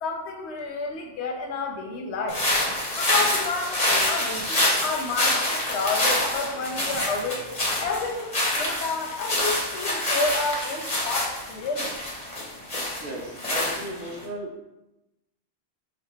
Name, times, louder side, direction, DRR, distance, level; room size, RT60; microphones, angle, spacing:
voice 1, 0.0-2.4 3.0-5.4 5.7-7.5 7.8-11.9, left 3 dB, 80° left, 3 dB, 0.9 m, -30 dB
sound 1, 2.3-14.2, left 1 dB, 35° left, 1.1 m, -26 dB
voice 2, 13.0-14.5, right 1 dB, 55° right, 0 dB, 0.8 m, -35 dB
4.7 x 2.4 x 3.5 m, 0.94 s
omnidirectional pair, 1.1 m